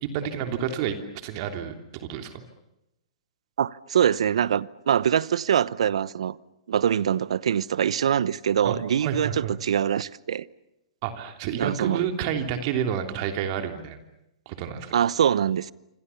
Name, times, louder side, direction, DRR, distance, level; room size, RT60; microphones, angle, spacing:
voice 1, 0.0-2.4 8.6-8.8 9.0-9.6 11.0-14.0 14.4-14.9, right 8 dB, 45° right, 3.2 m, -29 dB
voice 2, 3.6-6.4 6.7-10.5 11.6-12.0 14.9-15.7, right 9 dB, 75° right, 0.8 m, -24 dB
26.5 x 26.0 x 7.1 m
hypercardioid pair, 125°, 3 cm